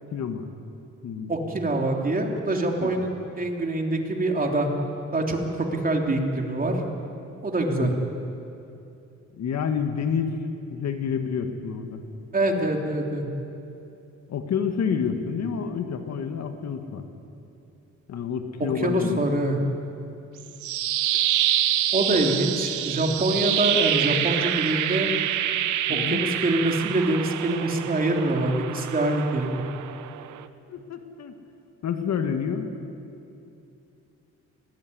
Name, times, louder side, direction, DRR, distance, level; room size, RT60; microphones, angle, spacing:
voice 1, 0.1-0.5 1.0-1.3 2.8-3.1 7.7-7.9 9.4-10.4 10.7-12.0 14.3-17.1 18.1-19.3 25.9-26.2 30.7-31.3 31.8-32.7, left 7 dB, 60° left, 7 dB, 1.8 m, -28 dB
voice 2, 1.3-4.7 5.1-6.8 7.4-7.9 12.3-13.2 18.7-19.6 21.9-25.1 25.9-29.6, right 2 dB, 30° right, 1 dB, 3.3 m, -25 dB
sound 1, 20.4-30.5, right 12 dB, 80° right, 1.0 m, -27 dB
20.0 x 19.0 x 9.4 m, 2.7 s
cardioid pair, 90°, 30 cm